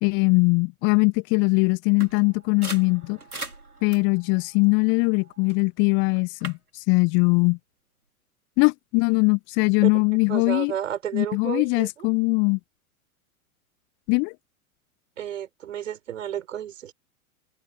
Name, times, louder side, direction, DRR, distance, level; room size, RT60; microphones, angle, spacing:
voice 1, 0.0-3.2 3.8-7.6 8.6-10.7 11.1-12.6 14.1-14.3, left 31 dB, 25° left, 0.9 m, -21 dB
sound 1, 2.0-5.6 6.1-6.6, right 2 dB, 85° right, 2.9 m, -41 dB
voice 2, 10.3-12.1 15.2-16.9, right 10 dB, 60° right, 4.5 m, -32 dB
figure-of-eight pair, 100°, 43 cm